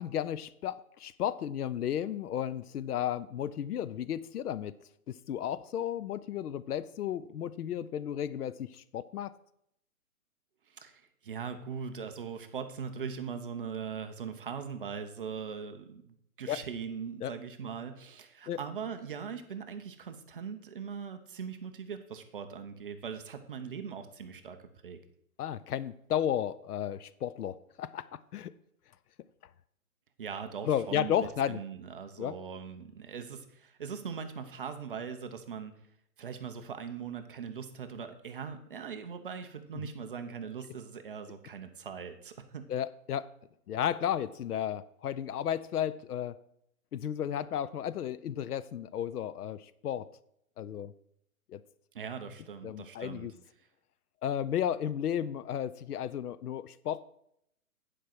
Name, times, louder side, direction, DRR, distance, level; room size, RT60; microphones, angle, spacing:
voice 1, 0.0-4.7 5.1-9.3 16.5-16.6 17.2-17.3 18.5-18.6 25.4-28.5 30.6-31.6 32.2-32.3 42.7-43.3 43.7-46.4 46.9-50.1 50.6-50.9 51.5-51.6 52.6-53.3 54.2-57.0, left 10 dB, 85° left, 16 dB, 0.7 m, -33 dB
voice 2, 10.7-24.6 24.8-25.0 30.2-35.7 36.2-42.7 51.9-53.3, right 6 dB, 35° right, 7 dB, 0.8 m, -40 dB
10.0 x 5.1 x 5.9 m, 0.74 s
hypercardioid pair, 165°, 44 cm